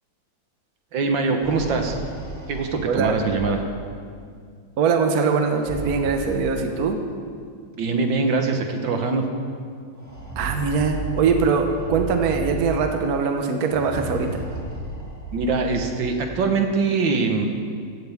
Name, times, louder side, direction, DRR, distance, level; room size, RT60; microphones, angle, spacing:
voice 1, 0.9-2.0 2.5-3.6 7.8-9.3 15.3-17.4, right 4 dB, 75° right, 4 dB, 1.9 m, -23 dB
sound 1, 1.3-4.1 5.4-7.1 8.1-8.2 8.6-8.7 10.0-13.1 13.6-16.2, right 2 dB, 10° right, 1.5 m, -34 dB
voice 2, 4.8-7.0 10.4-14.4, right 5 dB, 55° right, 4 dB, 1.4 m, -22 dB
16.0 x 15.0 x 3.6 m, 2.1 s
omnidirectional pair, 2.1 m